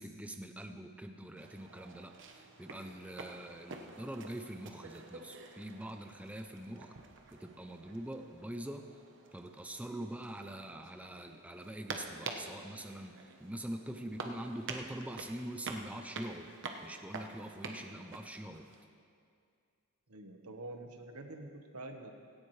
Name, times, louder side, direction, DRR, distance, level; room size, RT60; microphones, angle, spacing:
voice 1, 0.0-6.9 7.3-8.8 9.3-16.5 16.8-18.7, right 1 dB, 5° right, 5 dB, 0.5 m, -44 dB
sound 1, 1.4-18.8, right 3 dB, 55° right, 1.0 m, -48 dB
voice 2, 20.1-22.1, right 2 dB, 80° right, 4 dB, 1.3 m, -46 dB
17.0 x 16.5 x 3.3 m, 2.3 s
head